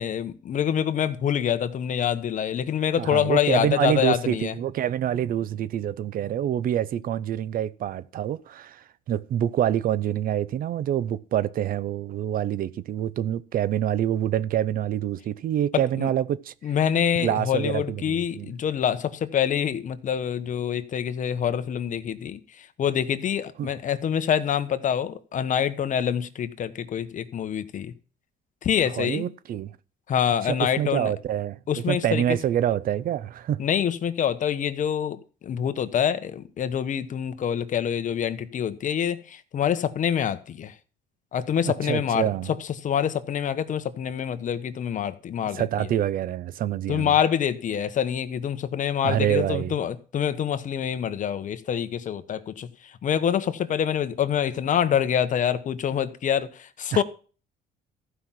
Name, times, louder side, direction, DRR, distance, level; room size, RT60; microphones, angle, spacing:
voice 1, 0.0-4.5 15.7-16.1 16.6-27.9 28.6-29.2 30.1-31.1 31.7-32.2 33.6-40.7 41.3-45.9 46.9-57.0, left 9 dB, 50° left, 1.2 m, -26 dB
voice 2, 3.0-16.5 17.2-18.5 23.6-23.7 28.9-29.7 30.4-31.6 31.9-33.6 41.6-42.5 45.5-47.1 49.0-49.8 56.9-57.0, right 11 dB, 60° right, 0.7 m, -26 dB
14.5 x 5.8 x 7.4 m
cardioid pair, 110°, 17 cm